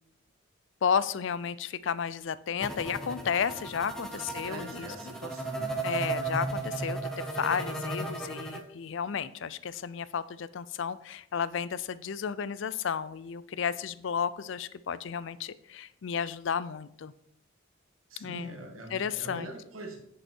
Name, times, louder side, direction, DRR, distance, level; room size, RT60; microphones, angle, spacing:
voice 1, 0.8-4.9 5.8-17.1 18.2-18.5 18.9-19.5, left 7 dB, 65° left, 17 dB, 0.4 m, -32 dB
sound 1, 2.6-8.6, right 2 dB, 5° left, 0.8 m, -35 dB
voice 2, 4.1-5.8 18.1-20.0, right 2 dB, 85° right, 3 dB, 1.8 m, -43 dB
9.6 x 5.5 x 4.5 m, 0.73 s
head